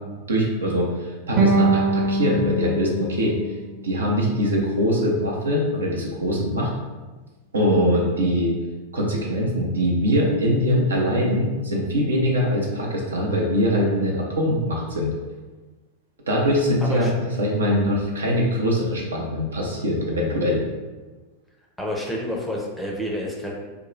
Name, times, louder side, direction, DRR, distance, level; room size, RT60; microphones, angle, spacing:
voice 1, 0.3-3.3 3.8-6.7 7.5-8.5 8.9-15.1 16.3-17.1 17.4-20.6, equal, 70° right, -2 dB, 0.7 m, -22 dB
sound 1, 1.4-4.5, right 3 dB, 30° right, 0.8 m, -23 dB
voice 2, 16.8-17.1 21.8-23.5, left 1 dB, ahead, -3 dB, 0.6 m, -29 dB
2.8 x 2.2 x 3.9 m, 1.3 s
figure-of-eight pair, 90°, 0 cm